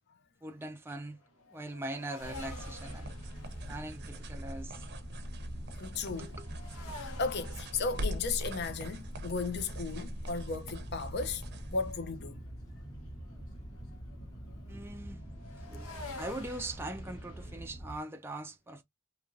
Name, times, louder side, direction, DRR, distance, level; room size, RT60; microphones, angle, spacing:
voice 1, 0.4-1.2 1.5-3.1 3.7-4.8 6.2-6.5 14.7-15.2 15.7-18.8, right 2 dB, 10° right, 0.3 m, -41 dB
sound 1, 0.6-11.9 12.2-17.6, left 2 dB, 75° left, 0.9 m, -52 dB
sound 2, 2.2-18.0, equal, 15° left, 0.7 m, -45 dB
sound 3, 2.2-11.9, equal, 50° right, 0.6 m, -42 dB
voice 2, 5.8-6.4 6.9-11.4 11.7-12.4, left 4 dB, 50° left, 0.5 m, -35 dB
2.9 x 2.5 x 2.5 m
head